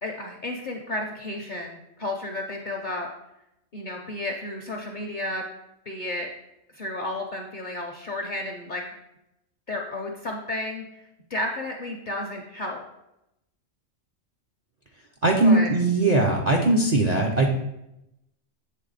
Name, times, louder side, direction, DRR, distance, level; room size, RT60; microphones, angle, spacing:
voice 1, 0.0-3.1 3.7-5.4 5.9-6.3 6.7-8.8 9.7-11.0 11.3-12.8 15.4-15.7, left 1 dB, 55° left, 2 dB, 0.5 m, -32 dB
voice 2, 15.2-17.5, right 2 dB, 55° right, -1 dB, 0.4 m, -20 dB
7.6 x 3.3 x 4.0 m, 0.86 s
omnidirectional pair, 1.4 m